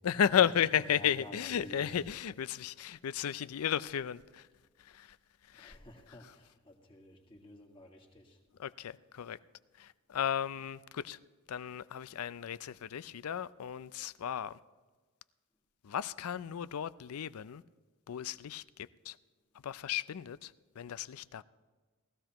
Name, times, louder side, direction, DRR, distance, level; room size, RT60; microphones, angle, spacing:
voice 1, 0.0-4.5 4.8-5.2 5.5-5.8 6.2-6.3 8.6-9.4 9.8-11.2 11.5-14.6 15.8-17.6 18.1-19.2 19.6-21.4, left 9 dB, 80° left, 0.4 m, -34 dB
voice 2, 0.8-2.0 5.5-8.4, left 1 dB, 25° left, 1.8 m, -51 dB
19.5 x 15.0 x 3.0 m
head